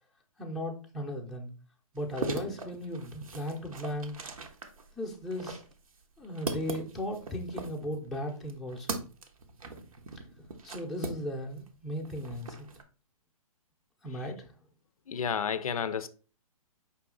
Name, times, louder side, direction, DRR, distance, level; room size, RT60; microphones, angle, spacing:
voice 1, 0.4-1.5 1.9-4.2 5.0-5.6 6.2-9.0 10.6-12.7 14.0-14.5, equal, ahead, 0.6 m, -36 dB
sound 1, 2.0-11.7 12.0-12.8, right 4 dB, 70° right, 0.9 m, -40 dB
voice 2, 15.1-16.1, left 7 dB, 70° left, 0.4 m, -31 dB
5.3 x 2.7 x 3.7 m
figure-of-eight pair, 135°, 19 cm